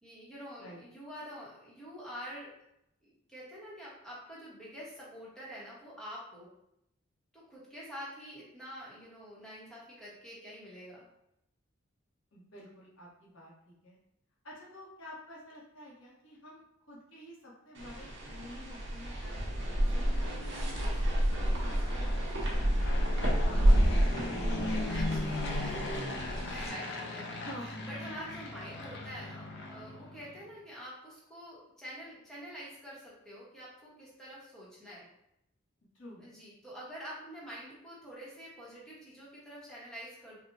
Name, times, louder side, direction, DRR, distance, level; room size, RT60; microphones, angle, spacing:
voice 1, 0.0-2.5 3.0-6.5 7.3-11.0 23.5-23.8 24.5-35.1 36.2-40.4, equal, 5° left, -7 dB, 1.1 m, -47 dB
voice 2, 12.3-14.0 14.4-20.4 20.7-22.6 23.4-24.5 27.3-27.9 35.9-36.3, left 1 dB, 80° left, -5 dB, 1.3 m, -50 dB
sound 1, 17.7-26.7, equal, 60° right, 0.9 m, -29 dB
Fixed-wing aircraft airplane, 19.4-30.4, left 2 dB, 60° left, 0.5 m, -39 dB
4.1 x 2.3 x 2.6 m, 0.81 s
head